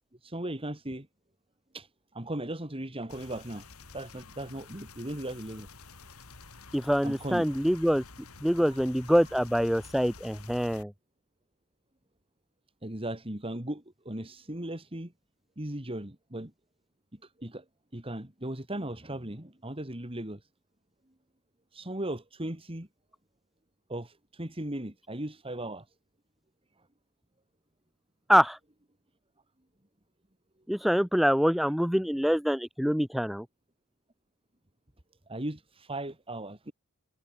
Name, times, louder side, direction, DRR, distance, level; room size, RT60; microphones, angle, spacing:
voice 1, 0.2-1.1 1.7-3.7 3.9-5.7 7.0-7.5 8.6-8.8 12.8-15.1 15.6-16.5 17.2-17.6 17.9-20.4 21.7-22.9 23.9-25.8 35.3-36.7, right 1 dB, 25° right, 2.7 m, -37 dB
sound 1, 3.1-10.8, left 4 dB, 80° left, 3.7 m, -50 dB
voice 2, 6.7-8.0 8.4-10.9 28.3-28.6 30.7-33.5, equal, ahead, 0.3 m, -25 dB
head